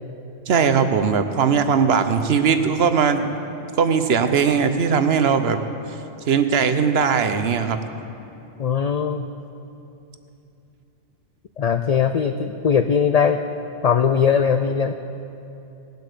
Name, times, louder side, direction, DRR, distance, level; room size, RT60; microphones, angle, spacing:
voice 1, 0.5-3.3 3.8-5.6 6.3-7.8, right 6 dB, 65° right, 9 dB, 1.0 m, -19 dB
voice 2, 8.6-9.3 11.6-13.4 13.8-14.9, left 7 dB, 60° left, 8 dB, 0.4 m, -20 dB
18.5 x 8.0 x 6.8 m, 2.8 s
omnidirectional pair, 1.2 m